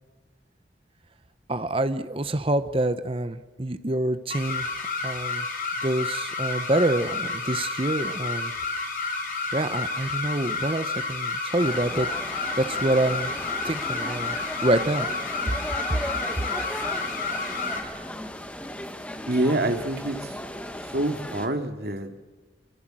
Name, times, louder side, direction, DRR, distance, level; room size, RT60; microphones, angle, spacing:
voice 1, 1.5-5.5 5.8-8.5 9.5-13.4 13.6-14.4 14.6-15.1, right 1 dB, 30° right, 11 dB, 1.0 m, -26 dB
sound 1, 4.3-17.8, left 3 dB, 50° left, 4.3 m, -30 dB
sound 2, 11.6-21.5, left 1 dB, 5° left, 1.4 m, -36 dB
voice 2, 19.3-20.3 20.9-22.2, right 1 dB, 60° right, 6 dB, 2.4 m, -26 dB
25.5 x 24.5 x 7.7 m, 1.2 s
head